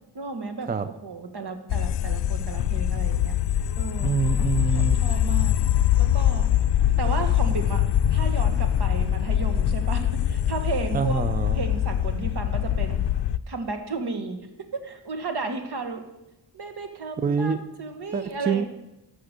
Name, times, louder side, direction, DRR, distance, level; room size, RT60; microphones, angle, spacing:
voice 1, 0.1-0.7 1.0-3.3 3.8-4.2 4.6-5.6 6.0-6.5 7.0-11.2 11.5-13.0 13.5-16.0 16.5-18.7, right 4 dB, 65° right, 6 dB, 1.6 m, -33 dB
sound 1, 1.7-13.4, left 11 dB, 70° left, 0.5 m, -23 dB
voice 2, 4.0-5.0 10.9-11.6 17.2-17.6 18.1-18.6, right 5 dB, 20° right, 12 dB, 0.4 m, -25 dB
12.5 x 6.0 x 6.6 m, 0.91 s
wide cardioid pair, 125°, 43 cm